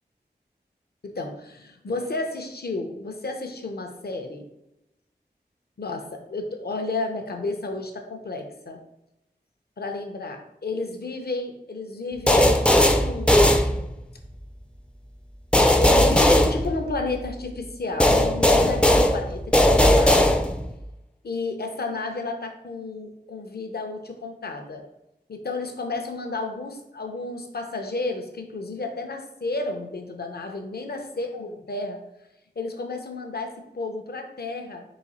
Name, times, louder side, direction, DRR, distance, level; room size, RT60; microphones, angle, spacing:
voice 1, 1.0-4.5 5.8-8.8 9.8-13.6 15.8-20.4 21.2-24.8 25.3-32.0 32.6-34.8, left 3 dB, 65° left, 4 dB, 0.6 m, -32 dB
sound 1, 12.3-14.2 15.5-17.3 18.0-20.8, left 1 dB, 5° left, 0.3 m, -18 dB
4.0 x 2.4 x 4.0 m, 0.88 s
wide cardioid pair, 45°, 18 cm